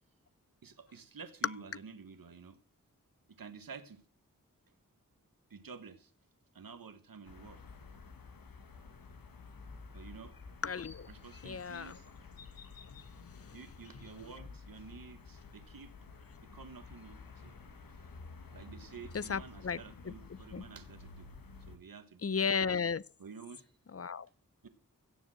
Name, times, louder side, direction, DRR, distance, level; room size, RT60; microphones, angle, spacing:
voice 1, 0.6-2.6 3.4-4.0 5.5-6.1 6.5-7.6 9.9-10.3 11.1-12.1 12.6-12.7 13.5-15.9 16.5-17.6 18.5-21.3 21.6-22.5 23.2-23.7 24.6-24.7, right 5 dB, 85° right, 1.5 m, -50 dB
sound 1, 7.2-21.8, left 4 dB, 85° left, 1.6 m, -52 dB
voice 2, 10.6-11.1 11.4-12.0 19.1-19.8 20.5-20.6 22.2-23.0 23.9-24.3, left 6 dB, 45° left, 0.7 m, -34 dB
16.5 x 7.4 x 7.7 m
cardioid pair, 40°, 34 cm